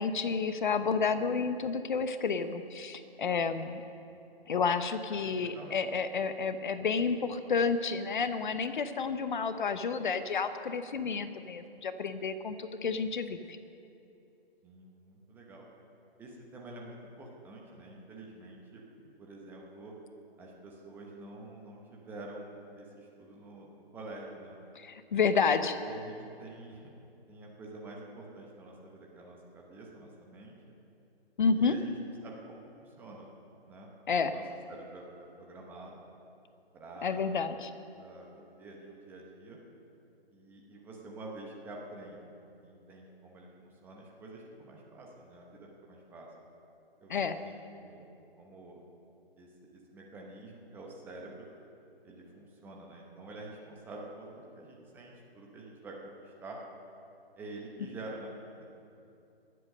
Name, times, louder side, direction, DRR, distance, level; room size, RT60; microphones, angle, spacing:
voice 1, 0.0-3.8 4.5-13.6 24.7-25.8 31.4-31.7 34.1-34.3 37.0-37.7 47.1-47.4, left 5 dB, 50° left, 10 dB, 0.8 m, -30 dB
voice 2, 5.1-5.8 14.6-15.6 16.2-18.8 19.2-19.9 20.4-24.6 25.5-26.9 27.3-30.5 31.5-31.9 32.2-33.3 33.6-34.4 34.7-36.1 36.7-37.3 37.9-39.6 40.3-42.3 42.6-46.3 47.0-48.1 48.4-48.8 49.4-49.5 49.7-51.4 52.0-56.6 57.4-58.8, right 2 dB, 5° right, -2 dB, 0.8 m, -47 dB
20.0 x 7.8 x 6.5 m, 2.7 s
figure-of-eight pair, 145°, 31 cm